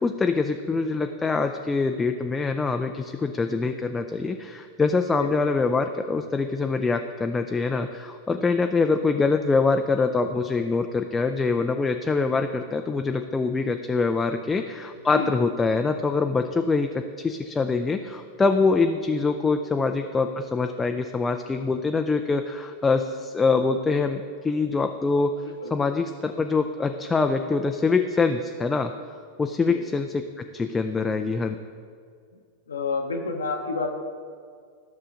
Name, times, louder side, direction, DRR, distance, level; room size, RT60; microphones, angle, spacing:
voice 1, 0.0-25.3 25.7-28.9 29.4-30.1 30.5-31.6, left 4 dB, 15° left, 6 dB, 0.3 m, -24 dB
voice 2, 15.1-15.5 25.6-25.7 29.6-29.9 32.7-33.9, left 4 dB, 70° left, 2 dB, 0.8 m, -30 dB
13.5 x 6.6 x 2.5 m, 2.2 s
figure-of-eight pair, 90°, 0 cm